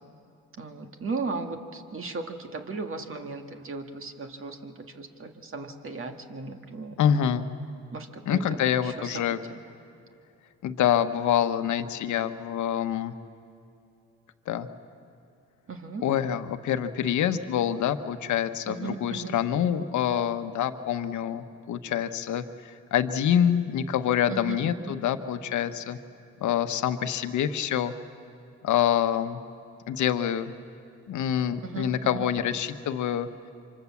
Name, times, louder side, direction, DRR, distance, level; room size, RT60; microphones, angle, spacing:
voice 1, 0.6-7.0 7.9-9.6 15.7-16.0 18.7-19.4 24.3-24.6 24.8-25.0 31.6-32.2, right 4 dB, 45° right, 5 dB, 1.8 m, -36 dB
voice 2, 7.0-7.4 8.3-9.4 10.6-13.1 14.5-14.7 16.0-26.0 26.4-27.9 28.6-29.4 29.9-30.5 31.1-33.3, left 9 dB, 75° left, 9 dB, 1.1 m, -26 dB
26.0 x 24.5 x 7.2 m, 2.6 s
cardioid pair, 90°, 30 cm